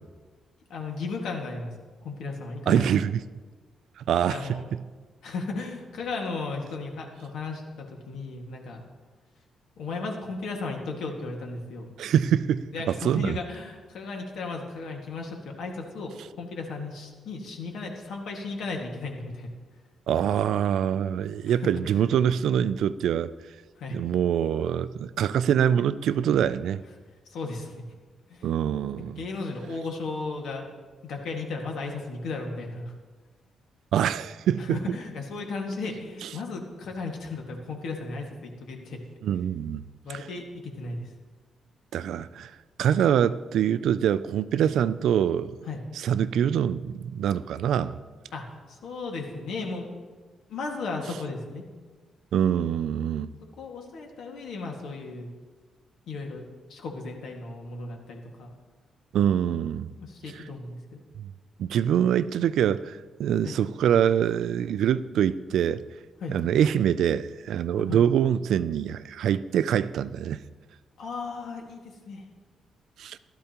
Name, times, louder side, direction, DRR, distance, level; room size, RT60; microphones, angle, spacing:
voice 1, 0.7-1.7 2.0-2.9 4.3-4.7 5.2-8.8 9.8-11.9 12.7-16.1 16.4-19.5 21.5-22.0 23.8-24.0 27.3-27.8 28.3-28.5 29.0-30.7 31.0-32.9 34.6-39.0 40.0-41.0 45.6-45.8 48.3-50.1 50.5-51.6 53.6-55.3 56.1-56.4 56.7-58.5 60.0-61.0 63.4-63.6 66.2-66.3 67.7-68.0 71.0-72.2, left 3 dB, 70° left, 1.9 m, -35 dB
voice 2, 2.7-3.2 4.0-4.4 12.0-13.4 20.1-23.3 23.9-26.8 28.4-29.2 33.9-34.8 39.2-39.8 41.9-42.5 42.8-45.6 46.0-48.0 52.3-53.3 59.1-59.9 61.2-61.3 61.6-65.8 66.3-70.4 73.0-73.2, right 9 dB, 70° right, 0.3 m, -24 dB
15.5 x 12.5 x 2.9 m
cardioid pair, 175°, 0 cm